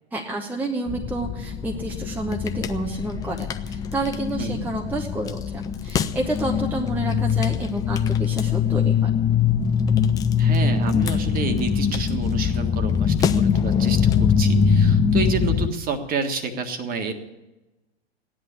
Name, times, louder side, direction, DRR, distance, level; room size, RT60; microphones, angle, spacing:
voice 1, 0.1-9.1, right 1 dB, 5° right, 1 dB, 1.0 m, -29 dB
sound 1, 0.9-15.7, left 7 dB, 10° left, 0.4 m, -22 dB
voice 2, 10.4-17.1, right 4 dB, 25° right, 7 dB, 1.7 m, -29 dB
15.5 x 10.5 x 8.3 m, 1.0 s
figure-of-eight pair, 105°, 33 cm